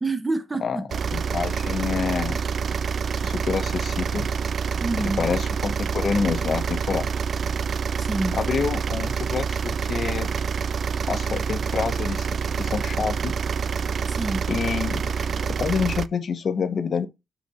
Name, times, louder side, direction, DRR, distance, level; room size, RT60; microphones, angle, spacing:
voice 1, 0.0-0.8 4.8-5.2 8.0-8.4 14.1-14.4, right 2 dB, 20° right, 1.2 m, -27 dB
sound 1, 0.9-16.1, right 6 dB, 50° right, 0.4 m, -27 dB
voice 2, 1.1-2.4 3.2-4.3 5.0-7.1 8.3-10.3 11.1-12.3 12.5-13.3 14.5-17.1, left 6 dB, 50° left, 1.0 m, -27 dB
8.0 x 4.2 x 4.2 m
wide cardioid pair, 135°, 0 cm